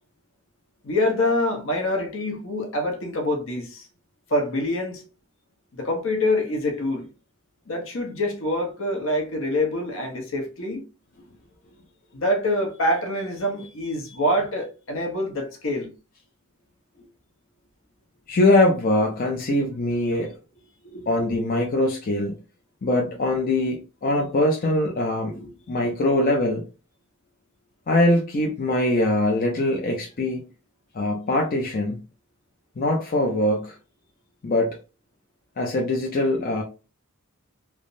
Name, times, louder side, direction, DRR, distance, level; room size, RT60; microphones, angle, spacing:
voice 1, 0.8-3.9 4.3-5.0 5.7-7.1 7.7-10.8 12.1-15.9 20.8-21.1, left 1 dB, 65° left, 0.9 m, -25 dB
voice 2, 18.3-20.3 21.1-22.3 22.8-26.6 27.9-30.4 30.9-32.0 32.8-33.7 34.4-34.8 35.6-36.6, left 1 dB, 40° left, 0.5 m, -22 dB
3.3 x 2.0 x 2.5 m
head